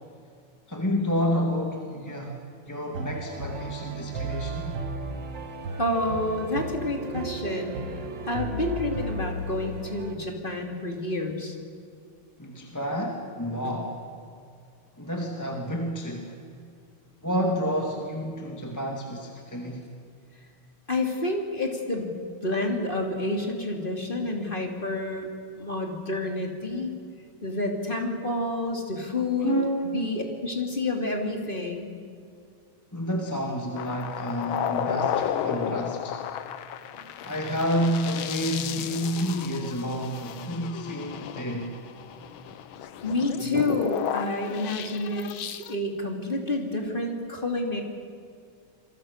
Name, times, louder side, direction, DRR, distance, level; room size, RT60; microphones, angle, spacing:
voice 1, 0.7-4.8 12.4-14.0 15.0-16.4 17.2-19.9 29.4-29.9 32.9-36.2 37.2-41.8, equal, 10° left, 1 dB, 1.9 m, -29 dB
sound 1, 2.9-10.1, right 2 dB, 60° right, 2.2 m, -34 dB
voice 2, 5.8-11.5 20.9-22.1 22.4-25.3 25.6-26.9 27.4-29.5 29.9-31.9 37.0-37.3 43.0-47.8, left 2 dB, 25° left, 2 dB, 3.0 m, -29 dB
sound 2, 33.8-45.7, left 9 dB, 75° left, 1.7 m, -33 dB
27.0 x 23.0 x 6.6 m, 2.2 s
omnidirectional pair, 2.3 m